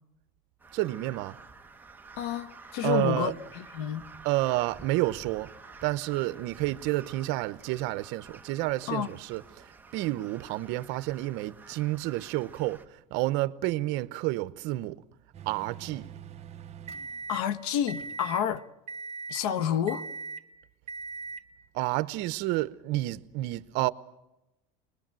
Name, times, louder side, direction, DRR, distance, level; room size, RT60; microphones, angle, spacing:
Crow, 0.6-12.9, right 4 dB, 10° right, 1.3 m, -50 dB
voice 1, 0.7-1.4 2.8-3.3 4.2-5.5 5.8-9.7 9.9-15.0 15.5-16.1 21.7-23.9, right 18 dB, 70° right, 1.0 m, -30 dB
voice 2, 2.2-4.0 8.9-9.1 17.3-18.6 19.3-20.0, left 9 dB, 90° left, 1.3 m, -29 dB
sound 1, 13.6-13.7 14.4-14.5 15.6-16.2 18.0-18.6 18.9-19.0, left 1 dB, 25° left, 4.1 m, -57 dB
sound 2, 15.3-17.4 17.9-18.4 18.9-19.4 19.9-20.4 20.9-21.4, right 4 dB, 35° right, 1.1 m, -40 dB
23.0 x 22.0 x 7.6 m
cardioid pair, 130°, 19 cm